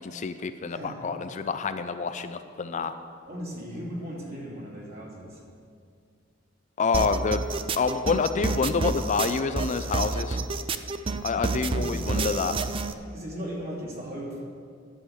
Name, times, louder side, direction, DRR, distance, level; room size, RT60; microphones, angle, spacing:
voice 1, 0.0-2.9 6.8-7.4 7.8-10.4 11.2-12.5, left 5 dB, 40° left, 10 dB, 0.4 m, -27 dB
voice 2, 0.7-1.0 3.2-5.4 11.3-12.3 13.1-14.4, equal, 50° right, -5 dB, 2.9 m, -38 dB
sound 1, 6.9-12.9, right 3 dB, 25° right, 0.4 m, -29 dB
11.5 x 7.1 x 6.4 m, 2.2 s
head